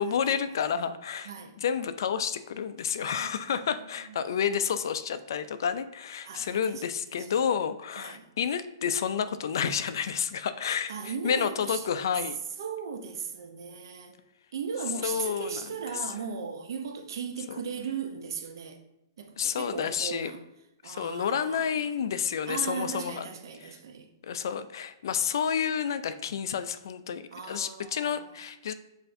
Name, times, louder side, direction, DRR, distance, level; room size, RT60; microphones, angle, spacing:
voice 1, 0.0-1.3 1.6-12.4 15.0-16.1 17.5-17.6 19.4-20.3 20.8-23.3 23.6-23.8 24.2-28.7, left 7 dB, 65° left, 0.3 m, -30 dB
voice 2, 1.2-1.6 3.0-3.7 4.1-4.3 6.2-6.6 7.3-7.5 8.0-8.3 10.9-11.8 12.6-14.1 14.5-18.8 19.2-20.4 20.8-21.9 22.5-24.1 27.3-28.3, right 6 dB, 70° right, 0.6 m, -37 dB
7.6 x 2.5 x 2.5 m
hypercardioid pair, 165°, 2 cm